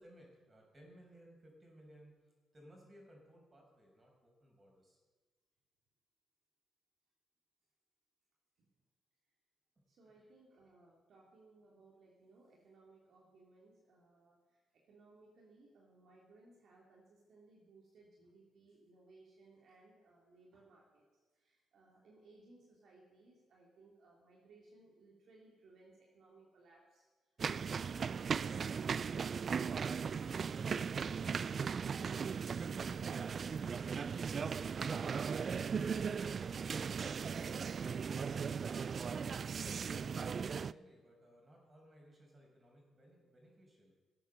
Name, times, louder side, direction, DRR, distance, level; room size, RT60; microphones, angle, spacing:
voice 1, 0.0-2.2 2.5-5.0 9.8-9.9 39.9-43.9, equal, 30° right, 0 dB, 5.8 m, -60 dB
voice 2, 9.9-21.0 21.3-27.1, right 2 dB, 60° right, -3 dB, 3.0 m, -63 dB
sound 1, 27.4-40.7, right 6 dB, 45° right, 0.3 m, -37 dB
18.5 x 8.2 x 6.7 m, 1.4 s
cardioid pair, 90°, 0 cm